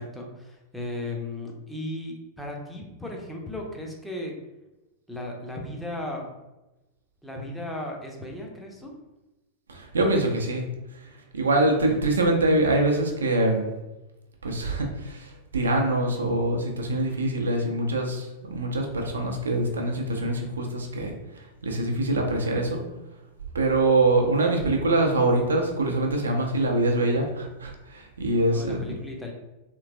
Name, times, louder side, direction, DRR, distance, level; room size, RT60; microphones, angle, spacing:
voice 1, 0.0-4.4 5.1-6.3 7.2-8.9 28.5-29.3, left 1 dB, 5° left, -1 dB, 0.6 m, -36 dB
voice 2, 9.7-10.6 11.3-13.7 14.4-22.8 23.5-28.8, right 2 dB, 70° right, 2 dB, 0.5 m, -24 dB
3.2 x 3.0 x 2.4 m, 1.0 s
figure-of-eight pair, 90°, 0 cm